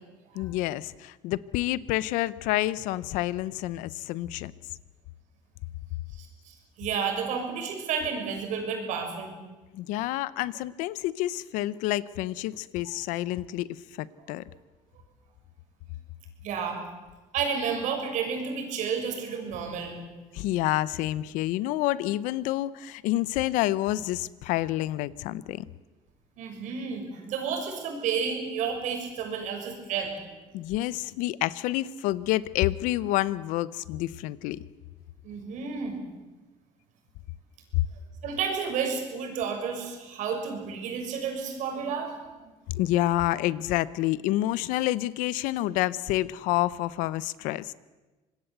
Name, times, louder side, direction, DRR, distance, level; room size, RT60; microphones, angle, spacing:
voice 1, 0.3-4.5 9.7-13.7 14.0-14.4 20.3-25.7 30.5-34.6 37.7-37.8 42.7-47.7, left 16 dB, 85° left, 19 dB, 0.8 m, -28 dB
voice 2, 6.2-9.3 16.4-16.8 17.3-20.0 26.4-30.1 35.2-36.0 38.2-42.2 42.4-42.5, right 6 dB, 70° right, 3 dB, 6.7 m, -31 dB
25.5 x 20.5 x 8.1 m, 1.2 s
cardioid pair, 110°, 13 cm